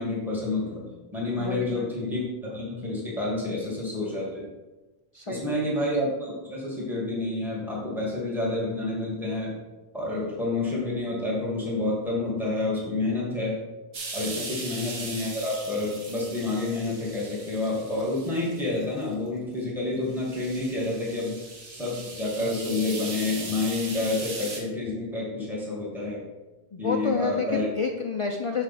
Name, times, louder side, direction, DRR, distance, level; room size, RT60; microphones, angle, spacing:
voice 1, 0.0-4.5 5.3-9.6 9.9-13.6 14.1-21.4 21.7-26.2 26.8-27.7, left 2 dB, ahead, -6 dB, 1.9 m, -29 dB
voice 2, 1.4-1.9 5.1-5.6 14.3-14.5 26.7-28.6, left 5 dB, 45° left, 3 dB, 0.4 m, -29 dB
sound 1, 13.9-19.1 19.6-19.7 20.1-24.6, right 3 dB, 85° right, 1.4 m, -39 dB
6.3 x 6.0 x 4.1 m, 1.1 s
omnidirectional pair, 1.0 m